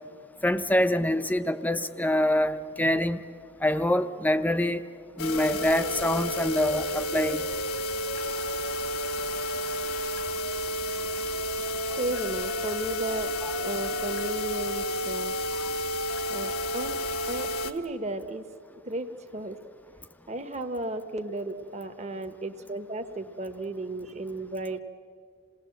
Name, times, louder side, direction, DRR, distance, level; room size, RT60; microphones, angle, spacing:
voice 1, 0.4-3.2 3.6-4.8 5.2-7.4 13.4-13.5, left 1 dB, 10° left, 11 dB, 0.5 m, -25 dB
sound 1, 5.2-17.7, left 1 dB, 80° left, 1.2 m, -31 dB
voice 2, 12.0-15.3 16.3-17.0 17.3-18.5 18.8-19.6 20.3-24.8, right 2 dB, 30° right, 7 dB, 1.0 m, -34 dB
27.5 x 19.0 x 7.7 m, 2.4 s
head